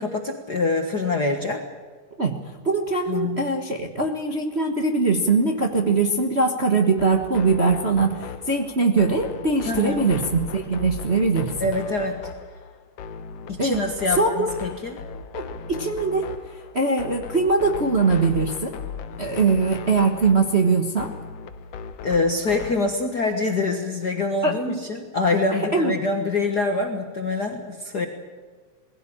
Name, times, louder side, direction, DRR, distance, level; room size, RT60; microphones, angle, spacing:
voice 1, 0.0-1.6 3.1-3.4 9.6-10.1 11.6-12.2 13.5-15.0 22.0-28.1, left 3 dB, 45° left, 4 dB, 1.5 m, -25 dB
voice 2, 2.6-11.7 13.6-13.8 14.2-14.5 15.3-16.3 16.7-18.7 19.2-21.1 24.4-24.8 25.7-25.9, right 3 dB, 40° right, 2 dB, 0.9 m, -22 dB
sound 1, 7.0-22.9, left 6 dB, 65° left, 1.9 m, -37 dB
20.0 x 16.5 x 8.7 m, 1.5 s
omnidirectional pair, 3.4 m